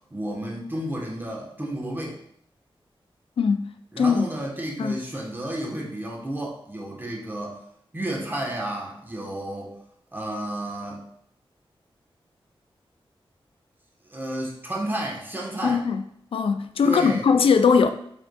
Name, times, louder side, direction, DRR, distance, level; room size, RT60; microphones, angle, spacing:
voice 1, 0.1-2.2 3.9-7.6 7.9-9.7 10.1-11.0 14.1-15.8 16.8-17.3, right 1 dB, 20° right, 1.1 m, -31 dB
voice 2, 3.4-3.7 4.0-4.3 4.8-5.0 15.6-16.0 16.3-17.9, left 5 dB, 75° left, 0.4 m, -20 dB
5.1 x 3.6 x 2.3 m
wide cardioid pair, 80°, 10 cm